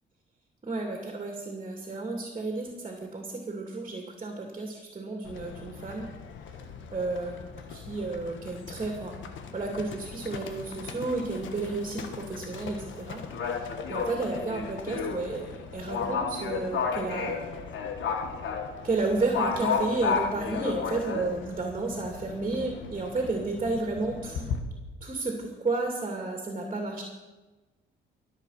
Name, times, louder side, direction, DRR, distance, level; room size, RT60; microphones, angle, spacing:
voice 1, 0.6-6.1 6.9-7.3 7.7-9.1 9.5-13.2 13.5-17.5 18.8-24.5 25.0-27.0, right 3 dB, 30° right, 2 dB, 2.7 m, -32 dB
Livestock farm animals working animals, 5.2-24.6, left 5 dB, 75° left, 1.5 m, -34 dB
21.5 x 7.9 x 5.8 m, 1.2 s
cardioid pair, 90°, 20 cm